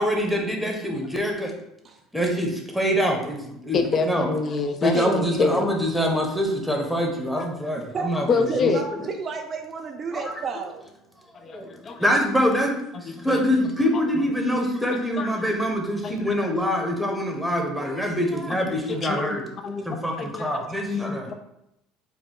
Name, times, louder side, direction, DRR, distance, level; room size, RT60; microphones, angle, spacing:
voice 1, 0.0-1.5 2.1-4.3 4.8-9.1 10.1-10.2 11.5-12.7 13.0-19.4 19.8-21.3, equal, ahead, 1 dB, 0.9 m, -25 dB
voice 2, 3.7-5.7 7.4-7.5 8.3-8.8 11.3-12.0 13.1-13.4 14.9-15.3 16.0-16.4 18.5-18.6 19.0-20.5 20.9-21.3, left 4 dB, 40° left, 6 dB, 0.5 m, -27 dB
voice 3, 4.9-5.4 7.9-8.1 8.5-10.8 20.7-20.8, right 5 dB, 35° right, 4 dB, 0.4 m, -31 dB
4.1 x 2.2 x 3.7 m, 0.81 s
supercardioid pair, 110°, 0 cm